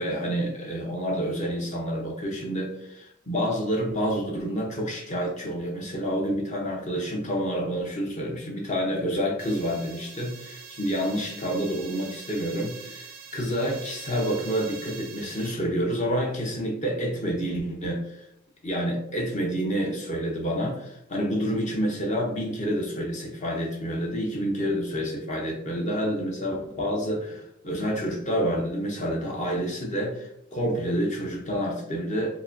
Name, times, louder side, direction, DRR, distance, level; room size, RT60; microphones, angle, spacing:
voice 1, 0.0-18.3 18.6-32.4, equal, 35° left, 0 dB, 0.7 m, -28 dB
sound 1, 9.4-15.5, right 6 dB, 50° right, 0.4 m, -44 dB
4.9 x 2.1 x 2.6 m, 0.75 s
head